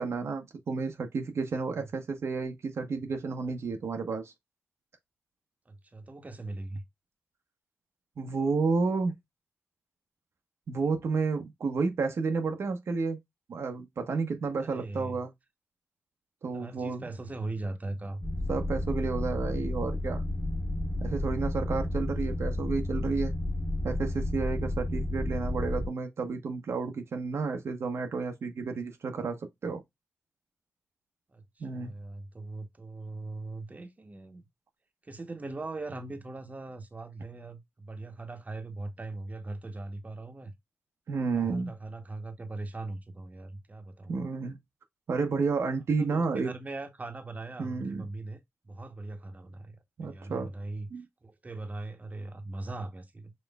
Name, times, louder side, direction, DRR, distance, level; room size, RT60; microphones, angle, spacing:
voice 1, 0.0-4.3 8.2-9.1 10.7-13.2 13.5-15.3 16.4-17.0 18.5-20.2 21.0-23.3 23.8-29.4 29.6-29.8 31.6-31.9 41.1-41.7 44.1-44.6 45.1-46.5 47.6-48.1 50.0-50.5 50.9-51.1, right 4 dB, 75° right, 0.8 m, -31 dB
voice 2, 5.7-6.8 14.6-15.2 16.4-18.2 31.3-34.5 35.0-40.5 41.4-44.1 46.0-48.4 48.6-50.9 51.2-53.3, right 2 dB, 35° right, 0.9 m, -40 dB
sound 1, 18.2-25.9, left 1 dB, 15° left, 1.6 m, -31 dB
5.3 x 3.1 x 2.2 m
cardioid pair, 55°, 5 cm